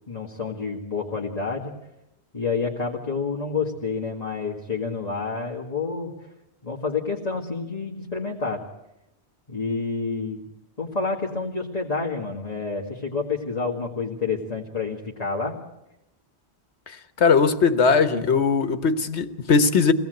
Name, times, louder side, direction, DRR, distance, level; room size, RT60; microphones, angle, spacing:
voice 1, 0.1-1.7 2.3-6.1 6.6-8.6 9.5-10.4 10.8-15.5, left 4 dB, 35° left, 2.2 m, -28 dB
voice 2, 17.2-19.9, left 5 dB, 90° left, 1.5 m, -19 dB
24.0 x 17.5 x 8.0 m
omnidirectional pair, 1.1 m